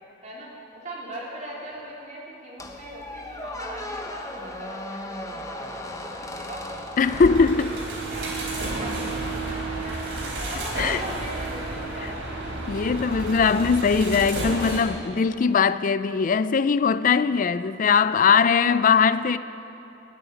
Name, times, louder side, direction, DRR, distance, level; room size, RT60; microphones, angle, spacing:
voice 1, 0.2-6.8 7.1-7.9 8.1-10.0 10.4-12.4 17.5-17.6 18.2-18.7 19.3-19.4, right 1 dB, 45° right, 3.5 m, -40 dB
Squeak, 2.6-8.1, left 1 dB, 20° left, 1.0 m, -36 dB
voice 2, 7.0-7.8 10.8-11.0 12.7-19.4, left 5 dB, 45° left, 0.4 m, -20 dB
sound 1, 7.0-14.8, right 2 dB, 75° right, 3.7 m, -31 dB
14.5 x 8.8 x 9.9 m
head